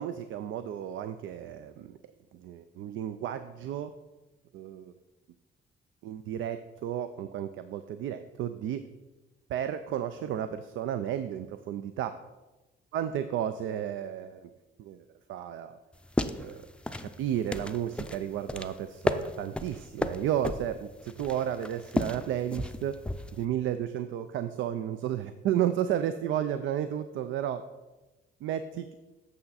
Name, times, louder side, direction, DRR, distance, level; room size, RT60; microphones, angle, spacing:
voice 1, 0.0-2.0 2.4-3.9 4.5-4.9 6.0-8.8 9.5-12.2 12.9-14.5 14.8-15.8 16.4-16.7 17.2-23.0 23.3-27.6 28.4-28.9, right 10 dB, 80° right, 11 dB, 0.4 m, -32 dB
sound 1, 15.9-23.4, left 1 dB, 5° left, 0.5 m, -34 dB
8.3 x 6.6 x 4.1 m, 1.1 s
cardioid pair, 90°, 20 cm